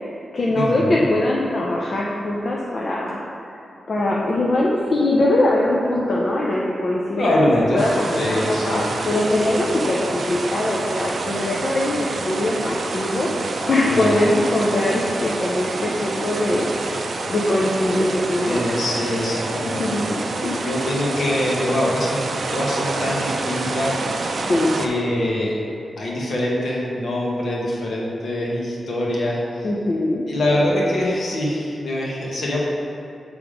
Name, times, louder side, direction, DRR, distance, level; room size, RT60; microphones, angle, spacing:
voice 1, 0.0-3.2 3.5-16.7 17.3-18.6 19.7-20.6 24.5-24.7 29.6-30.2, left 1 dB, 40° left, -4 dB, 0.5 m, -22 dB
voice 2, 0.5-1.0 7.1-7.9 8.1-8.9 13.9-14.4 18.5-20.0 20.6-22.2 22.5-24.0 24.7-25.6 26.0-29.7 30.3-32.6, left 1 dB, 60° left, -4 dB, 1.2 m, -23 dB
sound 1, 7.8-24.9, right 3 dB, 55° right, 0.4 m, -27 dB
6.9 x 3.5 x 4.9 m, 2.7 s
wide cardioid pair, 160°, 0 cm